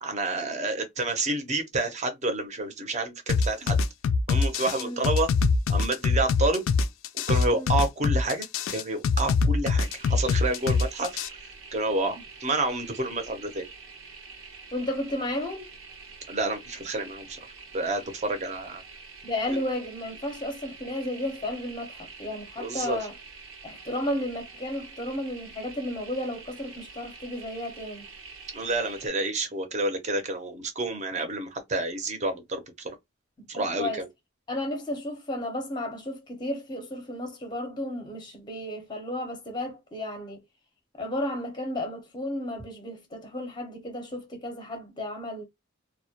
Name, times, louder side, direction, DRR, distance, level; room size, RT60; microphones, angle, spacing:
voice 1, 0.0-3.8 4.3-5.3 5.7-6.6 7.3-11.3 11.7-13.7 16.3-17.5 17.7-18.8 22.6-23.0 28.5-33.0 33.5-33.9, right 2 dB, 35° right, 0.6 m, -29 dB
sound 1, 3.3-11.3, left 4 dB, 70° left, 0.3 m, -23 dB
sound 2, 9.8-29.1, right 4 dB, 80° right, 0.7 m, -46 dB
voice 2, 14.7-15.7 19.2-23.1 23.6-28.1 33.5-34.0 34.5-40.4 41.0-45.4, left 1 dB, 20° left, 0.6 m, -33 dB
2.1 x 2.1 x 2.7 m
head